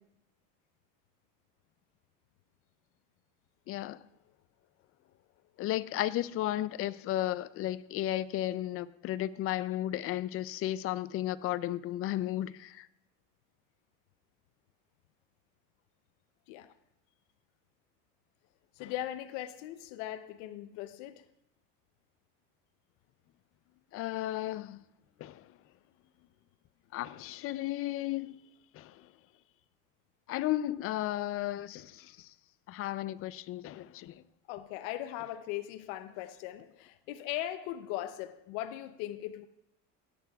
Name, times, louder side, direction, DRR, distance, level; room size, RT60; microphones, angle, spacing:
voice 1, 3.7-4.0 5.6-12.9 23.9-24.8 25.2-25.5 26.9-28.4 28.7-29.1 30.3-32.3 32.7-34.2, left 14 dB, 40° left, 0.4 m, -34 dB
voice 2, 18.8-21.2 34.5-39.5, left 13 dB, 85° left, 0.7 m, -39 dB
17.0 x 9.4 x 2.3 m
cardioid pair, 140°, 35 cm